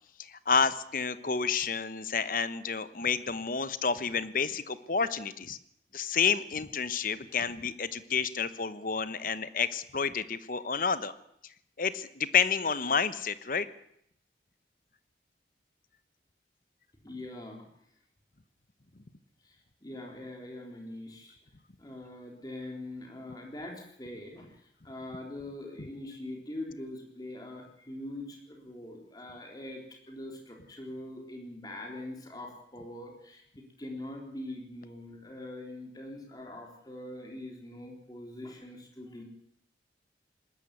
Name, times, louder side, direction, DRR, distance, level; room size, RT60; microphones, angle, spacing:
voice 1, 0.2-5.6 5.9-11.1 11.8-13.7, left 6 dB, 50° left, 14 dB, 1.0 m, -30 dB
voice 2, 17.0-17.7 19.4-21.4 21.8-39.2, left 1 dB, 20° left, 1 dB, 3.9 m, -43 dB
19.5 x 14.0 x 9.6 m, 0.73 s
head